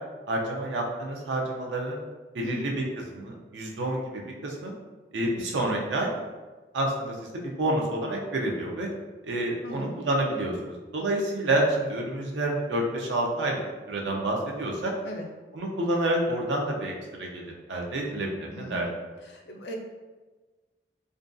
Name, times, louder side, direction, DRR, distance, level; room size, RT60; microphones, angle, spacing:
voice 1, 0.3-2.0 2.3-4.7 5.1-6.1 6.7-8.9 9.2-13.6 13.9-14.9 15.5-16.9 17.2-18.9, right 1 dB, 90° right, -1 dB, 0.5 m, -28 dB
voice 2, 2.4-2.7 9.6-10.0 15.0-15.3 18.5-18.9 19.2-19.8, left 1 dB, 70° left, 1 dB, 0.4 m, -39 dB
2.5 x 2.2 x 2.5 m, 1.3 s
head